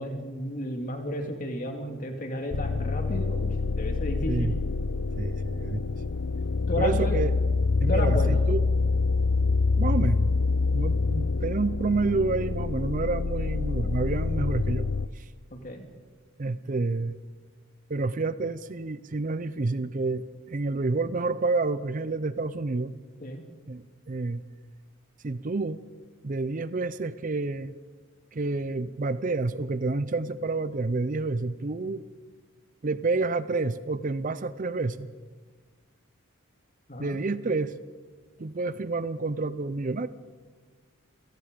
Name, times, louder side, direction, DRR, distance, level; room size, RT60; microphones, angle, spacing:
voice 1, 0.0-4.5 6.7-7.2 7.9-8.4 15.5-15.9 23.2-23.4 36.9-37.2, equal, 40° left, 4 dB, 2.3 m, -32 dB
sound 1, 2.5-15.1, left 4 dB, 70° left, 0.6 m, -26 dB
voice 2, 5.2-5.8 6.8-7.3 7.8-8.6 9.7-10.3 10.7-14.9 15.1-15.3 16.4-17.2 17.9-23.0 23.7-24.4 25.2-25.8 26.2-27.7 28.3-32.0 32.8-35.1 37.0-37.7 38.4-40.1, right 3 dB, 40° right, 15 dB, 0.5 m, -29 dB
27.5 x 18.5 x 5.2 m, 1.5 s
head